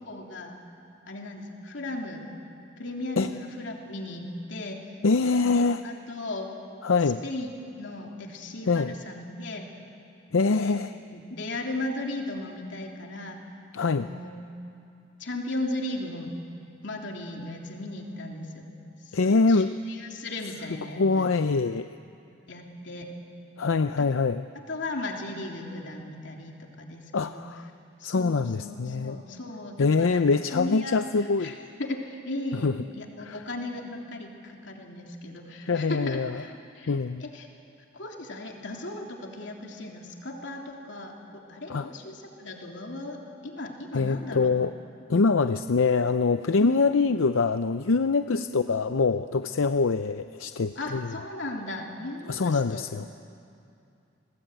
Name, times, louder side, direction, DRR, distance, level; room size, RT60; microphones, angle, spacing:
voice 1, 0.0-0.5 1.1-2.2 2.8-4.9 5.4-6.5 7.2-9.7 10.5-10.8 11.1-13.4 13.8-14.3 15.2-16.4 16.8-18.7 19.0-21.3 22.5-23.1 24.0-24.1 24.7-27.4 28.0-31.5 31.8-37.5 37.9-44.5 46.6-46.9 48.3-48.5 50.7-52.8, left 2 dB, 65° left, 1 dB, 3.2 m, -36 dB
voice 2, 5.0-5.8 6.8-7.2 8.7-8.9 10.3-10.9 13.7-14.0 19.1-19.7 21.0-21.9 23.6-24.4 27.1-27.6 28.0-29.2 29.8-31.5 32.6-32.7 33.3-33.4 35.6-36.4 36.9-37.2 41.7-41.9 43.9-44.7 45.1-51.1 52.3-53.1, left 4 dB, 90° left, 10 dB, 0.6 m, -24 dB
30.0 x 20.5 x 9.1 m, 2.6 s
head